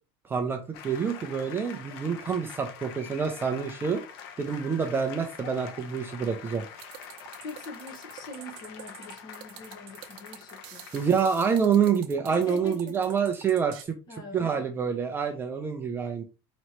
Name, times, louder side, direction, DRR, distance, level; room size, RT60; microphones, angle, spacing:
voice 1, 0.2-4.0 4.4-6.6 10.9-14.0 14.3-16.2, right 6 dB, 15° right, 0.5 m, -27 dB
sound 1, 0.7-11.1, left 8 dB, 70° left, 0.9 m, -45 dB
sound 2, 6.8-13.8, right 11 dB, 65° right, 0.8 m, -47 dB
voice 2, 7.4-10.8 12.3-13.0 14.1-14.7, left 1 dB, 35° left, 1.2 m, -42 dB
5.3 x 3.0 x 3.0 m
cardioid pair, 165°, 13 cm